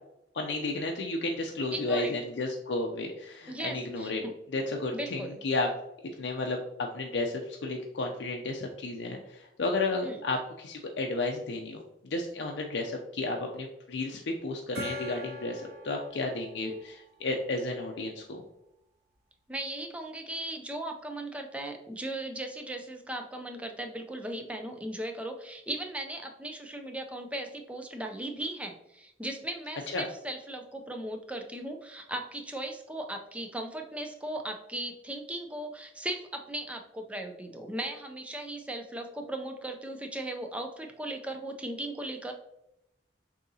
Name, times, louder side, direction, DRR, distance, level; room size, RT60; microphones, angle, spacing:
voice 1, 0.3-4.2 4.5-5.7 6.2-18.4 29.9-30.1, left 2 dB, 80° left, 1 dB, 0.5 m, -32 dB
voice 2, 1.7-2.1 3.5-4.3 4.9-5.4 10.0-10.2 16.6-16.8 19.5-42.3, right 1 dB, 5° right, 4 dB, 0.4 m, -37 dB
Gong, 14.7-18.0, left 1 dB, 60° right, 1.5 m, -44 dB
6.4 x 2.8 x 2.7 m, 0.83 s
head